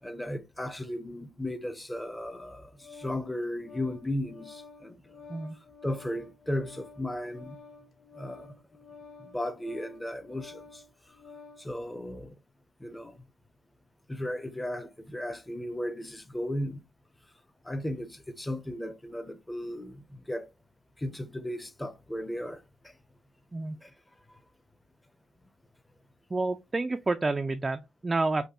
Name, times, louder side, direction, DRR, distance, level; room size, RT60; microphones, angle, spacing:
voice 1, 0.0-5.0 5.8-7.6 8.1-8.5 9.2-10.8 11.6-12.3 12.8-13.2 14.1-16.8 17.6-20.5 21.0-22.9 23.8-23.9, left 1 dB, 10° left, 0.6 m, -35 dB
Organ, 2.3-11.7, left 4 dB, 50° left, 1.0 m, -51 dB
voice 2, 26.3-28.5, right 3 dB, 20° right, 0.3 m, -29 dB
5.2 x 2.2 x 2.9 m
cardioid pair, 90°, 0 cm